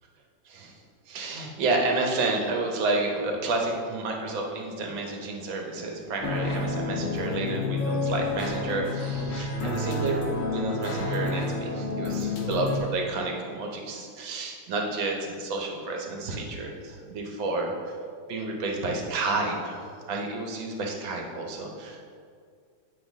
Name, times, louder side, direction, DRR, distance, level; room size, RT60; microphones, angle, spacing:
voice 1, 1.1-17.7 18.3-22.1, right 3 dB, 65° right, 1 dB, 1.7 m, -30 dB
sound 1, 6.2-12.8, left 3 dB, 60° left, 1.7 m, -29 dB
9.5 x 5.9 x 3.6 m, 2.2 s
omnidirectional pair, 2.4 m